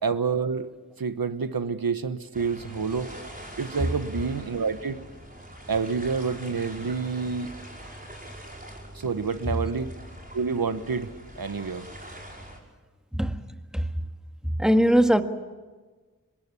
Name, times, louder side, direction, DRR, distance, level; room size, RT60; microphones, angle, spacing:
voice 1, 0.0-0.7 1.0-3.1 3.6-5.0 5.7-7.5 8.9-9.9 10.3-11.8, right 5 dB, 85° right, 1.2 m, -28 dB
sound 1, 2.3-12.6, right 1 dB, 25° right, 5.7 m, -43 dB
voice 2, 14.4-15.2, equal, ahead, 1.7 m, -21 dB
25.0 x 21.0 x 8.3 m
wide cardioid pair, 40°, 35 cm